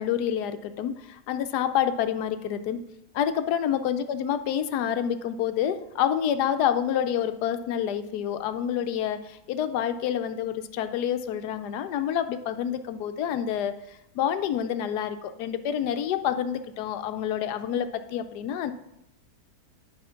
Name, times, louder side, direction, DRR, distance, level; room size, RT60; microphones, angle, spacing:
voice 1, 0.0-2.8 3.1-18.7, left 9 dB, 80° left, 10 dB, 1.2 m, -28 dB
9.5 x 3.6 x 5.7 m, 0.82 s
omnidirectional pair, 1.7 m